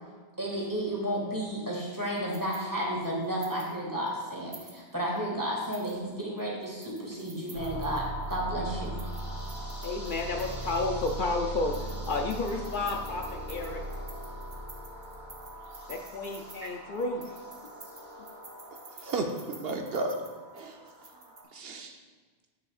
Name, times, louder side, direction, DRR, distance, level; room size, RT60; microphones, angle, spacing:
voice 1, 0.4-9.0, equal, 20° right, -3 dB, 1.7 m, -32 dB
sound 1, 1.9-3.7 4.1-4.2 4.5-5.2 5.6-8.4 8.8-11.3 11.6-21.4, right 3 dB, 40° right, 1.0 m, -52 dB
sound 2, 7.5-21.4, right 1 dB, 30° left, 1.7 m, -40 dB
voice 2, 9.8-13.8 15.9-17.2 18.2-18.3, left 3 dB, 60° left, 2 dB, 0.6 m, -31 dB
voice 3, 18.9-20.2 20.5-20.9 21.5-22.0, right 3 dB, 70° right, 3 dB, 0.8 m, -33 dB
9.5 x 6.3 x 2.4 m, 1.4 s
omnidirectional pair, 1.1 m